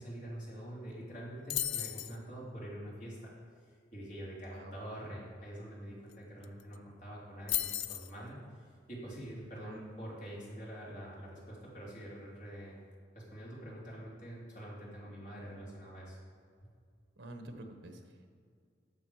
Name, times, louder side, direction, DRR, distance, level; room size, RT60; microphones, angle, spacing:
voice 1, 0.0-3.3 3.9-12.8 13.1-16.2, right 1 dB, 40° left, -5 dB, 3.0 m, -45 dB
sound 1, 1.5-2.2 6.1-6.2 6.4-6.8 7.5-8.1, left 12 dB, 75° left, 0.5 m, -34 dB
voice 2, 17.2-18.3, right 1 dB, 70° right, 5 dB, 1.2 m, -48 dB
12.0 x 7.1 x 4.8 m, 2.2 s
head